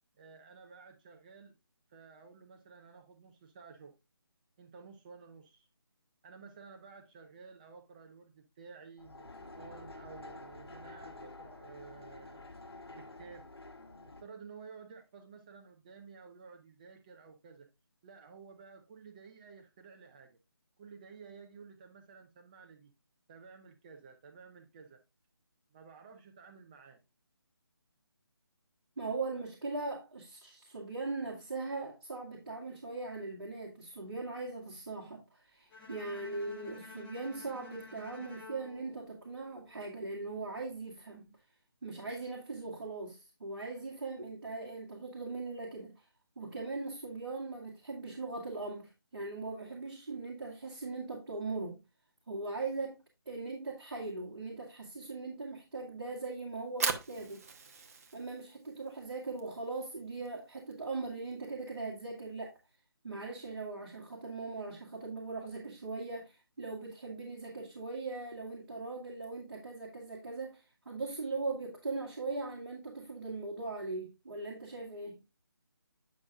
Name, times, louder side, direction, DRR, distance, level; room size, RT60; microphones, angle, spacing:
voice 1, 0.2-1.5 1.9-3.9 4.6-5.7 6.2-12.5 12.9-13.4 13.9-17.7 18.0-20.4 20.8-22.9 23.3-25.0 25.7-27.0, right 5 dB, 20° right, 0.6 m, -53 dB
sound 1, 9.0-14.2, left 2 dB, 70° left, 1.5 m, -49 dB
voice 2, 29.0-41.3 41.8-46.0 46.4-51.8 52.3-53.0 53.3-57.5 58.1-62.6 63.0-75.2, right 3 dB, 55° right, 2.0 m, -40 dB
Bowed string instrument, 35.7-39.9, left 3 dB, 10° left, 1.6 m, -52 dB
Fire, 56.5-62.7, right 5 dB, 35° right, 1.0 m, -41 dB
9.4 x 6.2 x 2.4 m
figure-of-eight pair, 155°, 13 cm